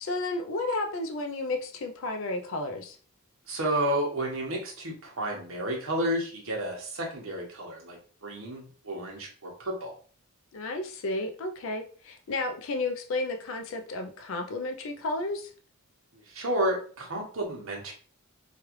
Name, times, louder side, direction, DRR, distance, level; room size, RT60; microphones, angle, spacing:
voice 1, 0.0-3.0 10.5-15.5, left 2 dB, 65° left, 5 dB, 0.4 m, -32 dB
voice 2, 3.5-9.9 16.1-17.9, right 1 dB, 70° right, 0 dB, 1.0 m, -31 dB
3.1 x 2.4 x 3.0 m, 0.42 s
head